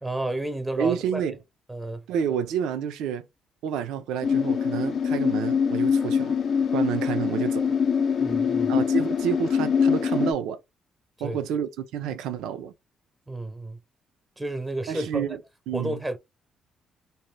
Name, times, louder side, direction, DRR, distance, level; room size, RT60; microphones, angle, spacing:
voice 1, 0.0-1.2 1.7-2.0 8.2-8.7 11.2-11.4 13.3-13.8 14.4-15.4 15.7-16.2, right 1 dB, 10° right, 0.5 m, -31 dB
voice 2, 0.8-1.4 2.1-3.2 3.6-6.4 6.7-7.8 8.7-10.6 11.2-12.7 14.9-15.4 15.7-16.0, right 8 dB, 90° right, 0.5 m, -29 dB
sound 1, 4.2-10.3, left 6 dB, 55° left, 0.5 m, -24 dB
2.7 x 2.2 x 3.1 m
cardioid pair, 90°, 0 cm